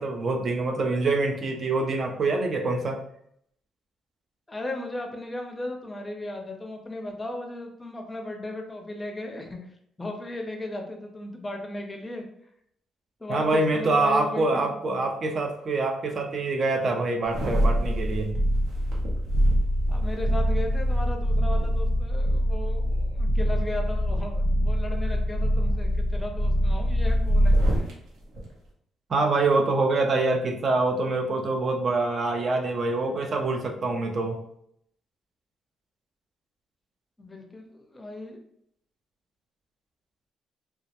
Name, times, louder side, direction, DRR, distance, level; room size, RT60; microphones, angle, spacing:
voice 1, 0.0-3.0 13.3-18.4 29.1-34.4, right 3 dB, 45° right, 4 dB, 0.4 m, -25 dB
voice 2, 4.5-12.2 13.2-14.8 19.9-27.9 37.2-38.4, left 2 dB, 20° left, 3 dB, 0.5 m, -36 dB
sound 1, 17.2-27.9 28.3-28.5, equal, 80° right, 0.7 m, -24 dB
2.2 x 2.0 x 2.8 m, 0.71 s
cardioid pair, 90°, 0 cm